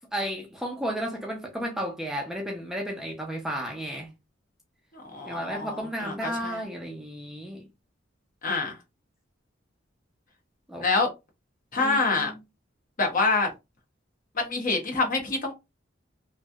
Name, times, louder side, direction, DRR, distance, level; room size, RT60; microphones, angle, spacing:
voice 1, 0.1-4.1 5.2-7.6 10.7-10.9 11.8-12.4, equal, 5° right, 0.6 m, -33 dB
voice 2, 5.1-6.6 8.4-8.8 10.8-11.1 11.7-12.3 13.0-13.5 14.3-15.5, left 3 dB, 45° left, 1.1 m, -26 dB
3.1 x 2.6 x 2.3 m
head